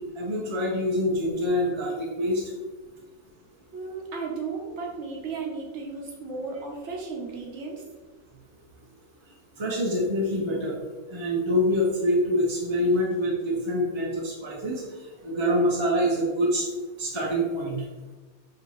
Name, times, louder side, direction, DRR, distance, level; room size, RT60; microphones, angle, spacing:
voice 1, 0.2-2.4 9.6-10.8 11.1-14.8 15.2-16.7 17.0-17.8, equal, 40° right, -3 dB, 0.4 m, -25 dB
voice 2, 3.7-7.8, right 4 dB, 60° right, -1 dB, 1.1 m, -34 dB
5.1 x 2.7 x 3.1 m, 1.3 s
omnidirectional pair, 1.5 m